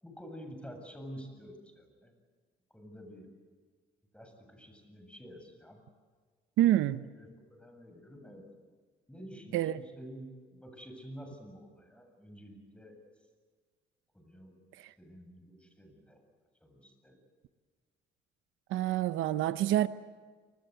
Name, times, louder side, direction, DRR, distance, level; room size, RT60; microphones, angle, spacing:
voice 1, 0.0-2.1 2.7-3.3 4.1-5.8 7.2-8.4 9.1-13.0 14.1-14.5 15.0-16.2 16.6-17.2, equal, 5° left, 7.7 m, -49 dB
voice 2, 6.6-7.0 9.5-9.8 14.8-14.9 18.7-19.9, right 13 dB, 90° right, 0.8 m, -27 dB
29.0 x 21.0 x 8.1 m
cardioid pair, 90°, 20 cm